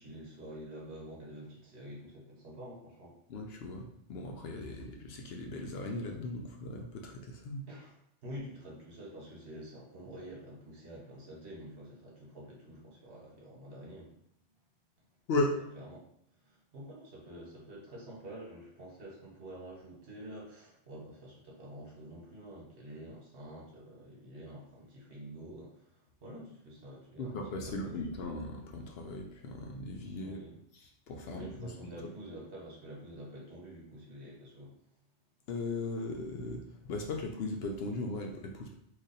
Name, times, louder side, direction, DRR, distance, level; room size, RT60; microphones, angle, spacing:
voice 1, 0.0-3.1 4.7-4.8 7.7-8.0 8.2-14.1 15.7-16.0 16.4-25.9 26.2-28.0 30.2-30.6 31.2-34.7, right 1 dB, 65° right, -3 dB, 1.3 m, -48 dB
voice 2, 3.3-7.6 15.3-15.5 27.2-30.4 30.7-31.7 35.5-38.8, left 2 dB, 65° left, 2 dB, 0.7 m, -37 dB
3.1 x 2.5 x 3.9 m, 0.73 s
omnidirectional pair, 1.2 m